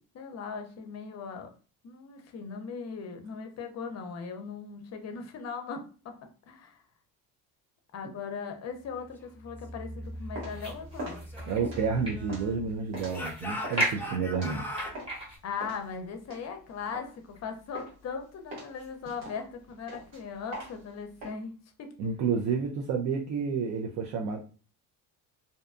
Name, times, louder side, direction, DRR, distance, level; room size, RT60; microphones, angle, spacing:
voice 1, 0.0-1.5 1.8-6.2 6.5-6.8 7.9-11.2 15.4-21.9, left 5 dB, 45° left, 5 dB, 0.6 m, -39 dB
sound 1, 8.8-15.4, right 1 dB, 15° right, 0.9 m, -37 dB
sound 2, 10.0-15.2 15.6-17.4 17.7-18.1 18.5-21.3, right 1 dB, 90° right, 1.3 m, -43 dB
Speech / Shout, 11.1-12.7 13.1-15.0, left 1 dB, 5° left, 0.5 m, -40 dB
voice 2, 11.5-14.7 22.0-24.5, right 5 dB, 55° right, 1 dB, 0.4 m, -30 dB
2.6 x 2.2 x 2.4 m, 0.38 s
cardioid pair, 110°, 36 cm